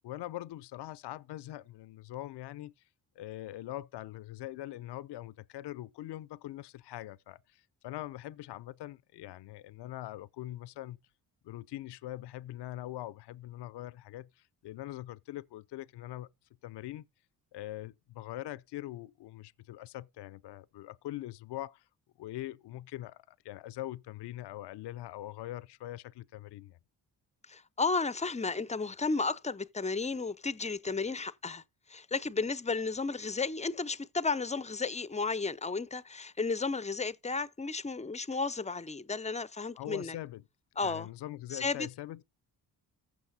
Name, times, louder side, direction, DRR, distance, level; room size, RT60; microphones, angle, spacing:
voice 1, 0.0-2.7 3.2-11.0 11.4-16.3 16.6-17.0 17.5-21.8 22.2-26.8 39.8-40.4 40.8-42.2, left 14 dB, 65° left, 0.6 m, -42 dB
voice 2, 27.5-31.6 31.9-40.2 40.8-41.1 41.5-41.9, left 4 dB, 15° left, 0.6 m, -33 dB
15.0 x 6.0 x 4.1 m
supercardioid pair, 50°, 44 cm